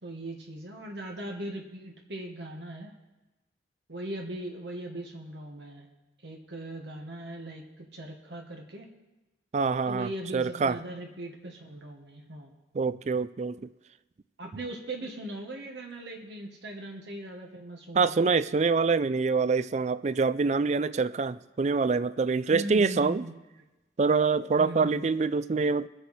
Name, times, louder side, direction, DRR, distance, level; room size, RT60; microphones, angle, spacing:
voice 1, 0.0-2.9 3.9-5.9 6.2-8.9 9.9-12.5 14.4-18.2 22.5-23.4 24.5-25.0, right 1 dB, 70° right, 1 dB, 1.5 m, -39 dB
voice 2, 9.5-10.8 12.7-13.7 17.9-23.2 24.0-25.9, right 4 dB, 40° right, 16 dB, 0.4 m, -25 dB
22.0 x 7.8 x 4.2 m, 1.1 s
head